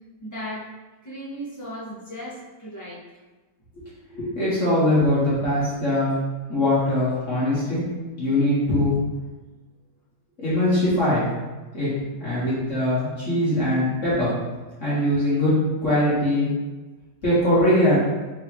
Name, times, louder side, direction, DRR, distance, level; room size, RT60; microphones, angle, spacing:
voice 1, 0.2-0.7 1.0-3.0, equal, 10° left, -10 dB, 1.2 m, -36 dB
voice 2, 4.1-6.2 6.5-7.8 8.2-9.0 10.4-11.4 11.7-11.9 12.2-14.3 14.8-15.5 15.8-16.5 17.2-18.0, left 1 dB, 45° left, -10 dB, 1.7 m, -21 dB
4.9 x 3.3 x 3.0 m, 1.2 s
omnidirectional pair, 2.0 m